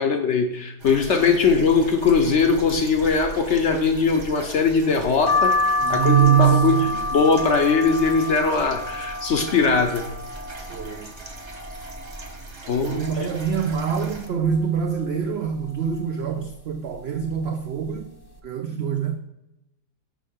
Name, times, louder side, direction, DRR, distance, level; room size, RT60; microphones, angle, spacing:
voice 1, 0.0-6.8 7.1-10.0 12.7-13.0, left 5 dB, 60° left, 0.8 m, -20 dB
sound 1, 0.8-14.3, right 2 dB, 30° right, 0.5 m, -39 dB
sound 2, 5.3-10.9 11.4-12.2 12.6-12.7 12.8-14.0 14.4-14.8 15.6-15.9 16.7-16.9 17.2-17.4, left 2 dB, 25° left, 0.5 m, -27 dB
voice 2, 5.8-7.1 10.7-11.1 12.6-18.1 18.4-19.2, right 9 dB, 75° right, 0.5 m, -24 dB
6.4 x 5.4 x 5.0 m
omnidirectional pair, 1.7 m